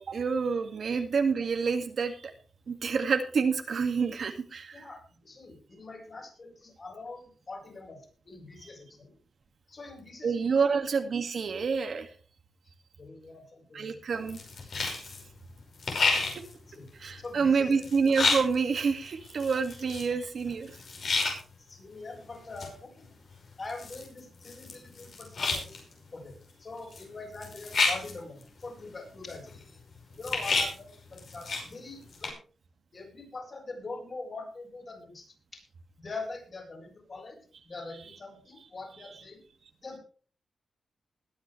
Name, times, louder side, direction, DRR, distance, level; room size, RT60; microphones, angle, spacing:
voice 1, 0.1-2.3 2.7-4.8 10.2-12.1 13.7-14.4 14.8-14.9 17.0-20.8, right 5 dB, 65° right, 5 dB, 2.1 m, -28 dB
voice 2, 4.7-8.0 8.2-9.2 9.7-10.9 13.0-14.0 16.2-16.4 16.7-16.9 17.2-17.8 20.1-20.2 21.6-23.1 23.6-25.8 26.1-29.6 30.2-32.4 32.9-35.6 36.0-39.4 39.8-40.0, left 3 dB, 45° left, 0 dB, 6.7 m, -43 dB
sound 1, 14.3-15.2 15.6-21.4 22.3-22.7 23.0-23.1 23.3-25.9 26.3-26.4 26.9-27.0 27.3-28.8 29.3-31.7 32.0-32.3, left 3 dB, 65° left, 5.4 m, -31 dB
20.5 x 9.9 x 3.3 m, 0.40 s
cardioid pair, 95°, 0 cm